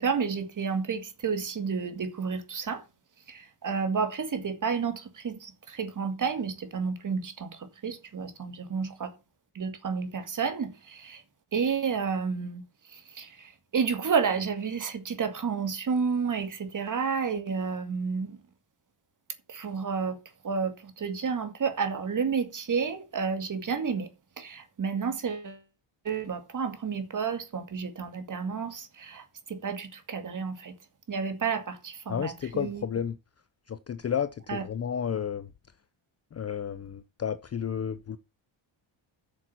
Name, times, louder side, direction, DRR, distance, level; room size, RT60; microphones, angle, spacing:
voice 1, 0.0-2.8 3.3-9.1 9.5-11.2 11.5-12.6 12.9-18.4 19.5-20.2 20.4-24.1 24.4-25.6 26.0-30.7 31.1-32.8 34.5-34.6, right 5 dB, 40° right, 2.1 m, -31 dB
voice 2, 32.1-33.2 33.7-35.5 36.3-38.2, left 8 dB, 30° left, 0.5 m, -32 dB
8.4 x 6.9 x 6.0 m
cardioid pair, 140°, 50 cm